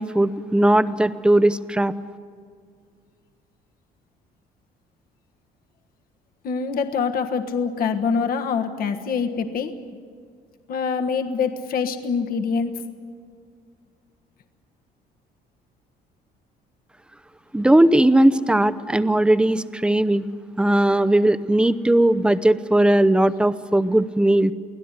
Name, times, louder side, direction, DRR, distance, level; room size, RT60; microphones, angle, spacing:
voice 1, 0.0-1.9 17.5-20.2 20.6-24.5, right 1 dB, 5° right, 14 dB, 0.7 m, -18 dB
voice 2, 6.4-9.8 10.7-12.8, left 5 dB, 60° left, 6 dB, 1.5 m, -25 dB
24.0 x 17.0 x 9.7 m, 2.1 s
cardioid pair, 110°, 17 cm